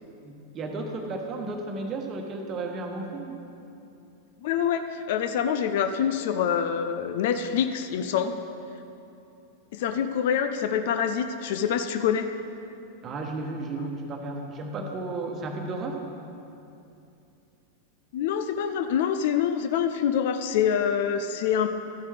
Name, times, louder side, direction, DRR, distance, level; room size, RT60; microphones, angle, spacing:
voice 1, 0.2-3.4 13.0-16.0, right 2 dB, 30° right, 3 dB, 1.1 m, -33 dB
voice 2, 4.4-8.4 9.7-12.3 18.1-21.7, left 8 dB, 50° left, 9 dB, 0.4 m, -26 dB
13.0 x 10.0 x 3.4 m, 2.7 s
figure-of-eight pair, 90°, 0 cm